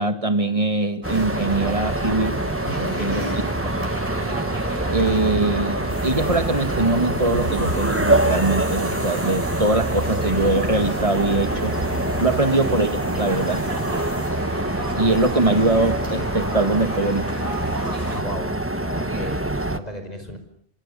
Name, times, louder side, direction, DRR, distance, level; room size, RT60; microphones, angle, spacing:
voice 1, 0.0-2.4 3.0-3.2 4.9-11.7 12.2-13.7 14.9-17.3, right 2 dB, 30° right, 8 dB, 2.0 m, -22 dB
sound 1, 1.0-19.8, right 1 dB, 10° right, 1.2 m, -25 dB
sound 2, 1.0-18.2, right 1 dB, 45° right, 6.8 m, -34 dB
voice 2, 2.6-3.0 12.1-12.4 13.4-13.6 18.2-20.4, equal, 35° left, 7 dB, 5.4 m, -35 dB
sound 3, 5.9-14.3, right 1 dB, 65° right, 6.1 m, -35 dB
27.5 x 26.0 x 7.1 m, 0.62 s
omnidirectional pair, 1.2 m